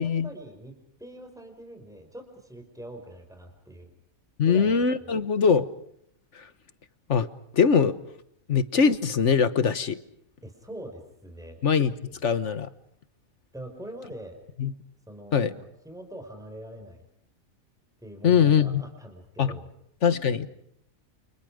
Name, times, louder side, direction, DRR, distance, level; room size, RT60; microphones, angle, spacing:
voice 1, 0.0-3.9 4.4-4.7 5.0-5.1 10.4-11.6 13.5-14.4 15.1-17.0 18.0-19.7, right 1 dB, ahead, 4 dB, 5.5 m, -43 dB
voice 2, 4.4-5.7 7.1-7.3 7.5-7.9 8.5-10.0 11.6-11.9 12.2-12.7 14.6-14.7 15.3-15.5 18.2-18.8 19.4-19.6 20.0-20.5, left 6 dB, 60° left, 13 dB, 1.5 m, -22 dB
29.5 x 28.5 x 5.1 m, 0.70 s
omnidirectional pair, 1.5 m